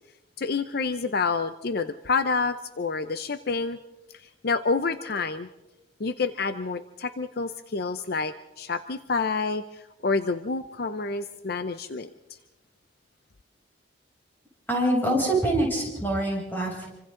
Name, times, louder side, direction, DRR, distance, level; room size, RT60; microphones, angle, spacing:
voice 1, 0.4-3.8 4.1-5.5 6.0-12.1, left 4 dB, 55° left, 11 dB, 0.7 m, -28 dB
voice 2, 14.7-16.9, right 1 dB, 10° left, -3 dB, 7.3 m, -25 dB
27.5 x 25.5 x 3.8 m, 0.99 s
head